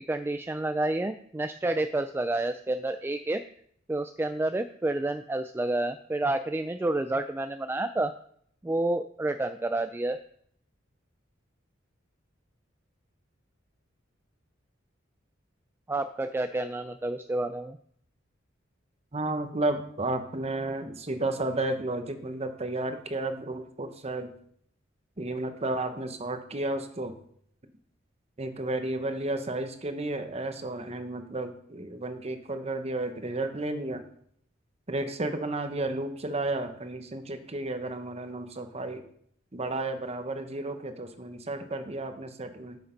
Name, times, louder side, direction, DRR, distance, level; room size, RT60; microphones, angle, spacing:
voice 1, 0.1-3.4 3.9-8.1 8.6-10.2 15.9-17.8, right 2 dB, 10° right, 9 dB, 0.3 m, -29 dB
voice 2, 19.1-24.4 25.2-27.2 28.4-34.0 34.9-39.0 39.5-42.8, right 2 dB, 35° right, 7 dB, 1.0 m, -32 dB
8.7 x 6.5 x 5.2 m, 0.65 s
head